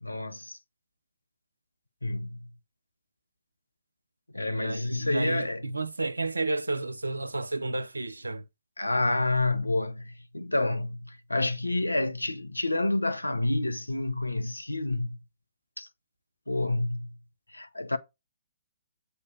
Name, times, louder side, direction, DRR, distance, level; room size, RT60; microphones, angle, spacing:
voice 1, 0.0-0.6 2.0-2.5 4.3-5.6 8.8-15.2 15.8-15.9 16.5-17.1 17.5-18.0, left 2 dB, 85° left, 0.8 m, -29 dB
voice 2, 4.5-8.4, right 2 dB, 80° right, 0.6 m, -32 dB
8.0 x 3.2 x 6.1 m
figure-of-eight pair, 125°, 0 cm